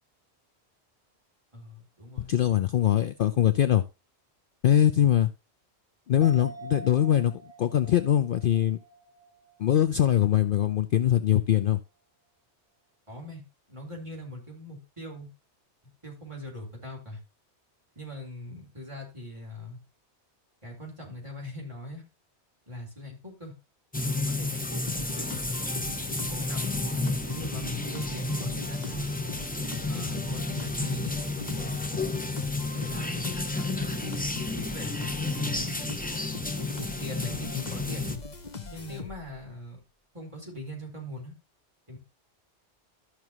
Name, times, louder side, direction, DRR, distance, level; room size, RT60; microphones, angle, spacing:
voice 1, 1.5-2.3 13.1-13.4 13.7-15.3 16.0-17.2 18.0-19.8 20.6-22.0 22.7-23.5 24.3-25.3 25.8-29.1 29.8-31.9 32.7-35.8 36.5-38.2 38.7-39.8 40.1-41.3 41.9-42.0, left 1 dB, 25° right, 4.1 m, -41 dB
voice 2, 2.2-3.8 4.6-5.3 6.1-7.3 7.6-8.8 9.6-11.8, left 11 dB, 60° left, 0.7 m, -22 dB
sound 1, 6.2-9.9 10.3-10.4, right 3 dB, 75° right, 2.0 m, -45 dB
sound 2, 23.9-38.2, left 2 dB, 10° left, 0.5 m, -32 dB
sound 3, 24.9-39.4, left 5 dB, 40° left, 1.2 m, -40 dB
13.0 x 6.1 x 2.9 m
omnidirectional pair, 1.2 m